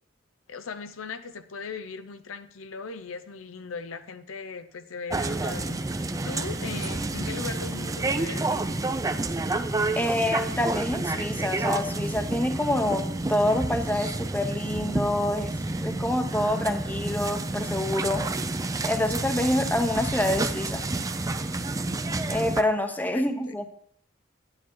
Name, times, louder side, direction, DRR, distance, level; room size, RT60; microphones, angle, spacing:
voice 1, 0.5-8.7 23.1-23.5, left 5 dB, 85° left, 11 dB, 0.6 m, -39 dB
sound 1, 5.1-22.6, right 2 dB, 15° right, 0.5 m, -29 dB
voice 2, 9.9-15.5 15.8-18.2 18.8-20.8 22.3-23.7, left 1 dB, 10° left, 7 dB, 0.8 m, -27 dB
10.0 x 8.9 x 3.8 m, 0.65 s
head